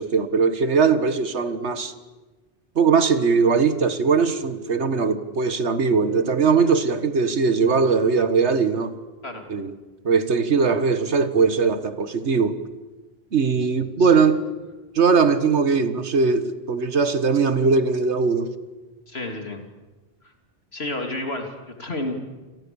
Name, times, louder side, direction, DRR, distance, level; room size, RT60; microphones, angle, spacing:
voice 1, 0.0-1.9 2.8-8.9 9.5-9.7 10.1-12.6 13.3-14.4 15.0-18.5, right 5 dB, 85° right, 1.8 m, -20 dB
voice 2, 19.1-19.6 20.2-20.3 20.7-22.2, left 2 dB, 65° left, 3.5 m, -31 dB
28.5 x 27.5 x 7.1 m
omnidirectional pair, 1.1 m